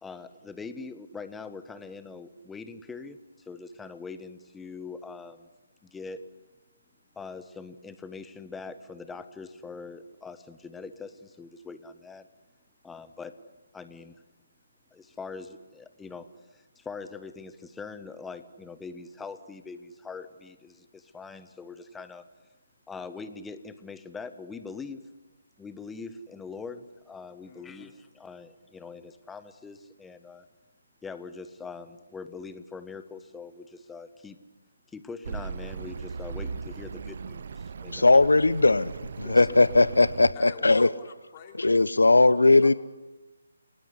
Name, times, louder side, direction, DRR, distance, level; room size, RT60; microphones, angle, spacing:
voice 1, 0.0-3.2 3.5-5.5 5.8-6.2 7.1-12.3 12.8-14.2 14.9-16.3 16.5-22.3 22.9-25.0 25.6-30.5 31.0-34.4 34.9-38.1 39.2-39.4, left 4 dB, 5° left, 11 dB, 1.3 m, -42 dB
voice 2, 27.4-27.9 40.3-41.9 42.2-42.7, left 7 dB, 30° left, 3 dB, 3.8 m, -46 dB
Accelerating revving vroom, 35.2-40.3, right 5 dB, 55° right, 1.1 m, -38 dB
voice 3, 37.9-38.9 39.2-40.9 41.6-42.7, left 2 dB, 85° left, 17 dB, 0.9 m, -19 dB
29.5 x 18.5 x 9.8 m, 1.1 s
figure-of-eight pair, 150°, 0 cm